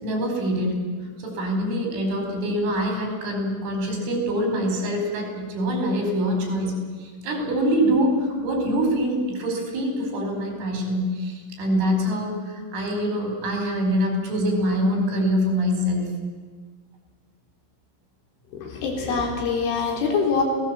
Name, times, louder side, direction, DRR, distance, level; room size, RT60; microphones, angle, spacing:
voice 1, 0.0-0.8 1.2-6.8 7.2-12.4 12.7-16.1, equal, 85° right, 3 dB, 6.9 m, -24 dB
voice 2, 18.5-20.4, left 5 dB, 80° left, 1 dB, 6.2 m, -24 dB
27.0 x 18.0 x 7.6 m, 1.5 s
omnidirectional pair, 5.4 m